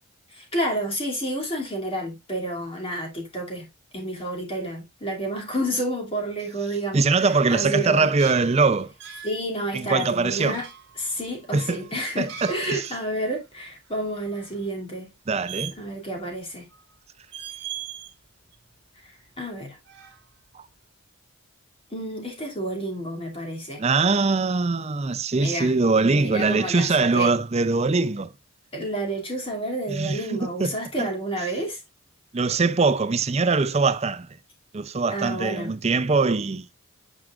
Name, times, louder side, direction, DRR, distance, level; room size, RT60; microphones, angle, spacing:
voice 1, 0.3-8.1 9.2-10.7 11.0-15.1 15.8-16.7 19.0-19.8 21.9-23.8 25.3-25.7 26.0-27.3 28.7-31.8 35.1-35.7, right 1 dB, 25° left, 2.7 m, -30 dB
voice 2, 6.9-8.9 9.7-10.6 11.5-11.8 12.2-12.9 15.3-15.7 20.5-20.6 23.8-28.3 29.9-31.1 32.3-34.3 34.7-36.7, right 4 dB, 30° right, 0.4 m, -22 dB
sound 1, 8.2-9.4 10.0-13.1 13.3-13.4 13.8-14.6 15.5-16.2 16.5-16.9 17.2-18.1 18.5-19.6 19.8-20.6, right 9 dB, 50° right, 2.2 m, -40 dB
9.2 x 5.0 x 2.4 m
head